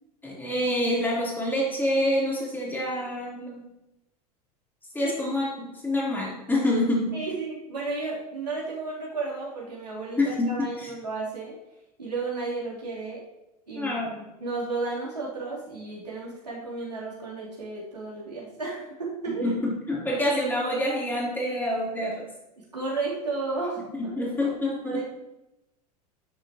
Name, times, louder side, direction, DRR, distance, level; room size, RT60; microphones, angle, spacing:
voice 1, 0.2-3.7 4.9-7.2 10.2-10.9 13.7-14.3 19.3-22.3 24.0-25.0, left 1 dB, 10° left, -4 dB, 3.9 m, -27 dB
voice 2, 7.1-11.5 12.0-13.2 13.7-19.5 22.7-24.1 24.8-25.0, right 3 dB, 85° right, -6 dB, 3.7 m, -33 dB
12.0 x 7.6 x 3.1 m, 0.94 s
figure-of-eight pair, 85°, 20 cm